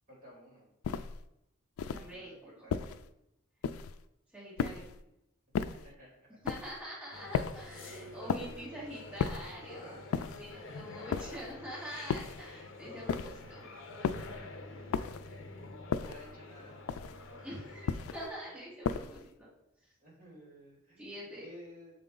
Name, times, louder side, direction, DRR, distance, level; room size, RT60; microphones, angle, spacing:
voice 1, 0.1-0.7 2.1-3.0 5.7-6.3 7.1-12.3 14.1-17.0 20.0-22.0, equal, 35° right, -5 dB, 2.5 m, -55 dB
sound 1, 0.8-1.2 1.8-2.2 2.7-3.1 3.6-4.0 4.6-5.0 5.5-5.9 6.5-6.8 7.3-7.7 8.3-8.7 9.2-9.6 10.1-10.5 11.1-11.5 12.1-12.5 13.1-13.5 14.0-14.4 14.9-15.3 15.9-16.3 16.9-17.3 17.9-18.3 18.9-19.3, left 6 dB, 75° left, 0.3 m, -35 dB
voice 2, 1.9-2.5 4.3-4.9 6.4-13.6 17.4-19.3 21.0-21.4, equal, 5° right, -10 dB, 2.2 m, -45 dB
sound 2, 7.1-18.2, left 3 dB, 55° left, 0.7 m, -48 dB
7.3 x 4.1 x 3.8 m, 0.86 s
head